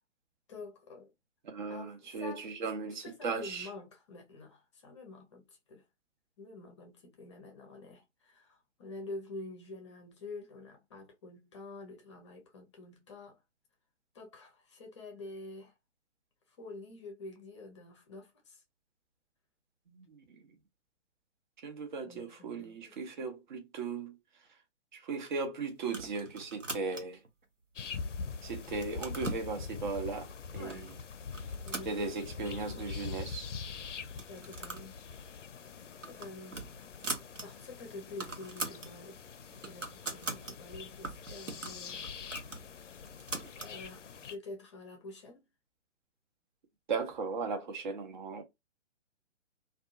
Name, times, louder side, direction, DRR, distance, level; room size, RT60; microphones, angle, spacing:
voice 1, 0.5-1.1 1.7-1.9 2.2-2.5 3.0-5.4 5.7-5.8 6.4-13.4 14.1-15.7 16.6-18.6 22.0-22.9 30.5-30.9 31.6-32.0 32.4-32.8 34.3-35.0 36.1-36.6 37.4-39.3 39.6-42.1 42.5-42.7 43.6-45.4, left 2 dB, 25° left, 0.6 m, -47 dB
voice 2, 1.4-3.7 19.9-20.4 21.6-24.2 24.9-27.2 28.4-30.9 31.8-33.5 46.9-48.4, right 4 dB, 40° right, 0.7 m, -37 dB
sound 1, 25.8-27.3 27.8-28.3 28.6-29.5 30.2-30.3 30.7-31.0 31.3-32.5 32.9-33.0 33.2-33.3 34.0-34.9 35.2-35.4 35.8-37.5 37.8-37.9 38.1-38.9 39.3-40.5 41.0-43.7, right 3 dB, 90° right, 0.9 m, -41 dB
sound 2, 27.8-44.4, left 5 dB, 75° left, 0.5 m, -44 dB
2.6 x 2.3 x 2.4 m
figure-of-eight pair, 130°, 37 cm